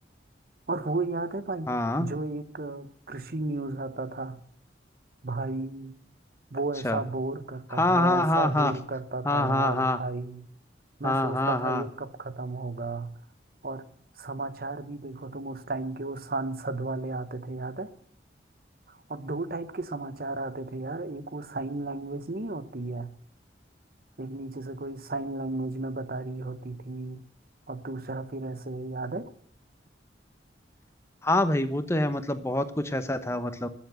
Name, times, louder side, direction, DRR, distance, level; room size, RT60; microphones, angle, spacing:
voice 1, 0.7-1.7 2.0-4.4 5.2-5.9 6.5-10.5 11.0-13.1 13.6-13.8 14.1-17.9 18.9-23.1 24.2-27.2 27.7-29.3, right 2 dB, 55° right, 13 dB, 0.9 m, -34 dB
voice 2, 1.7-2.1 6.8-7.0 7.7-8.7 9.2-10.0 11.0-11.8 31.2-33.7, left 1 dB, 15° left, 10 dB, 1.0 m, -25 dB
21.0 x 7.2 x 7.7 m, 0.62 s
head